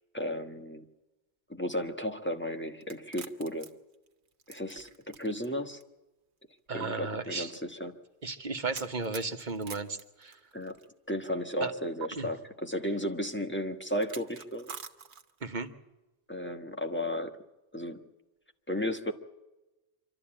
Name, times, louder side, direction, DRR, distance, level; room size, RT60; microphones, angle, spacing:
voice 1, 0.1-0.8 1.5-3.7 4.5-5.8 6.7-8.0 10.5-10.8 11.1-14.7 16.3-17.4 17.7-18.0 18.7-19.1, equal, 10° left, 5 dB, 1.4 m, -34 dB
sound 1, 2.8-5.5 5.8-5.9 6.8-6.9 8.7-10.9 12.0-12.1 14.0-15.5, right 7 dB, 80° right, 1.5 m, -45 dB
voice 2, 6.7-7.5 8.2-10.4 11.6-11.7 12.2-12.3 15.4-15.7, right 3 dB, 45° right, 7 dB, 1.4 m, -34 dB
26.0 x 13.0 x 8.8 m, 1.1 s
omnidirectional pair, 1.1 m